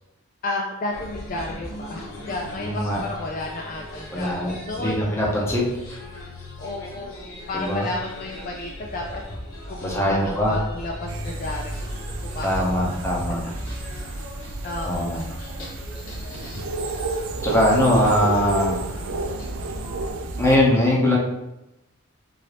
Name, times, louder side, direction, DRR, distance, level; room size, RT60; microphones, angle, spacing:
voice 1, 0.4-2.0 2.3-5.4 6.6-9.2 9.7-13.6 14.6-15.5, left 2 dB, 40° left, 0 dB, 0.3 m, -33 dB
sound 1, 0.9-20.1, left 1 dB, 65° left, 1.0 m, -38 dB
voice 2, 2.6-3.0 4.1-5.7 7.5-7.8 9.8-10.5 12.4-13.4 14.9-15.2 17.4-18.8 20.4-21.2, left 1 dB, 10° left, -4 dB, 0.8 m, -21 dB
sound 2, 11.1-20.6, right 2 dB, 70° right, 0.5 m, -31 dB
4.1 x 3.9 x 3.3 m, 0.94 s
head